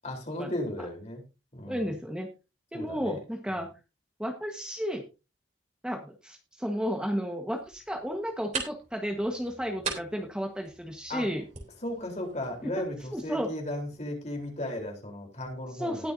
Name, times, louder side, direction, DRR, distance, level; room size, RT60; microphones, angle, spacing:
voice 1, 0.0-1.2 1.5-1.9 2.7-3.2 3.5-3.7 11.1-11.3 11.8-16.1, left 1 dB, 35° left, 2 dB, 3.9 m, -36 dB
voice 2, 1.7-2.3 2.7-3.7 4.2-5.0 5.8-11.4 12.6-12.7 13.1-13.5 15.8-16.1, equal, 5° right, 2 dB, 1.4 m, -32 dB
sound 1, 7.5-14.5, right 5 dB, 40° right, 3.5 m, -42 dB
20.0 x 6.9 x 2.7 m, 0.29 s
head